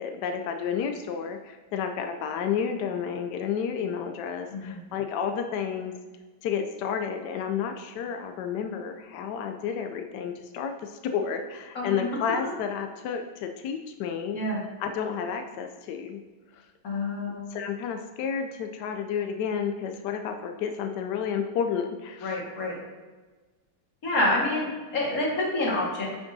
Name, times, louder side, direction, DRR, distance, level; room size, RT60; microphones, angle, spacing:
voice 1, 0.0-5.9 6.4-14.4 14.8-16.2 16.5-16.6 17.5-22.4, left 7 dB, 80° left, 6 dB, 0.9 m, -31 dB
voice 2, 4.5-4.8 11.7-12.1 14.3-14.6 16.8-17.4 22.2-22.8 24.0-26.1, left 1 dB, 45° left, -4 dB, 2.1 m, -27 dB
9.8 x 5.9 x 2.7 m, 1.3 s
omnidirectional pair, 2.3 m